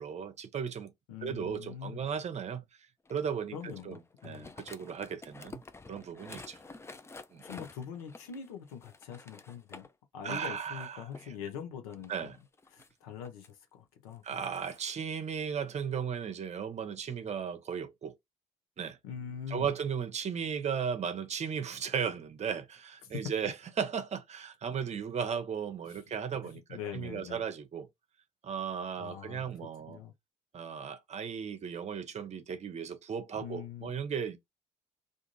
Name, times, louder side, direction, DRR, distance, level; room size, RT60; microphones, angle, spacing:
voice 1, 0.0-0.9 1.2-2.6 3.1-5.6 5.9-6.6 7.3-7.4 10.2-11.3 12.1-12.4 14.2-18.1 18.8-19.0 19.5-27.9 28.4-30.0 30.5-34.4, right 7 dB, 40° right, 0.8 m, -36 dB
voice 2, 1.1-2.0 3.5-4.5 7.4-9.9 10.1-12.3 12.7-14.4 19.0-19.7 26.4-27.4 29.0-29.5 29.9-30.1 33.4-33.9, left 8 dB, 75° left, 0.7 m, -43 dB
sound 1, 3.1-9.9 10.2-11.3 11.9-13.5 14.1-14.8, left 3 dB, 15° left, 0.4 m, -50 dB
2.6 x 2.4 x 3.0 m
figure-of-eight pair, 50°, 18 cm